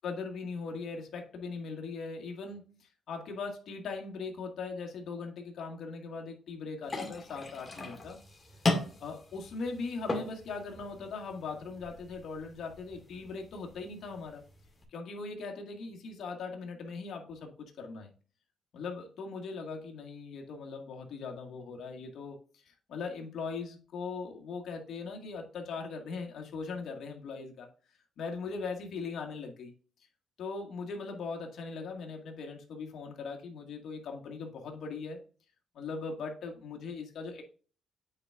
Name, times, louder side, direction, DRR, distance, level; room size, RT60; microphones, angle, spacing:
voice 1, 0.0-8.2 9.0-14.4 14.9-18.1 18.7-27.7 28.2-29.7 30.4-35.2 35.7-37.4, left 4 dB, 65° left, 2 dB, 1.9 m, -40 dB
sound 1, 6.8-14.8, left 2 dB, 25° left, 2.0 m, -38 dB
8.6 x 4.6 x 2.5 m, 0.39 s
cardioid pair, 90°, 0 cm